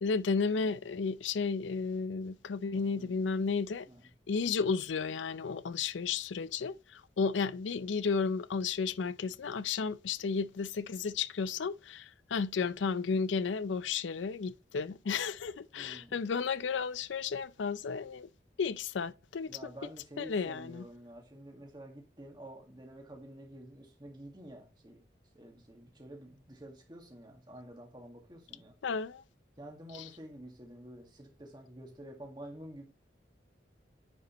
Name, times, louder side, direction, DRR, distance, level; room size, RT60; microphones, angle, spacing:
voice 1, 0.0-3.9 4.3-18.3 18.6-19.5 20.2-20.8 28.8-29.2, left 5 dB, 85° left, 0.5 m, -33 dB
voice 2, 2.7-3.2 3.9-4.1 15.7-16.2 19.5-25.0 25.3-28.8 29.6-32.8, right 1 dB, 25° right, 1.8 m, -49 dB
9.7 x 5.1 x 3.0 m
head